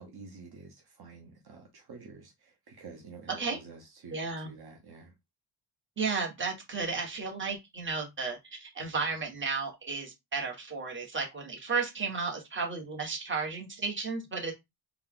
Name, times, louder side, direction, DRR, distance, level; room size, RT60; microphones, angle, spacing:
voice 1, 0.0-5.1, right 4 dB, 50° right, 1.2 m, -49 dB
voice 2, 4.1-4.5 6.0-14.6, right 4 dB, 25° right, 1.4 m, -33 dB
4.2 x 2.3 x 3.7 m
cardioid pair, 110°, 47 cm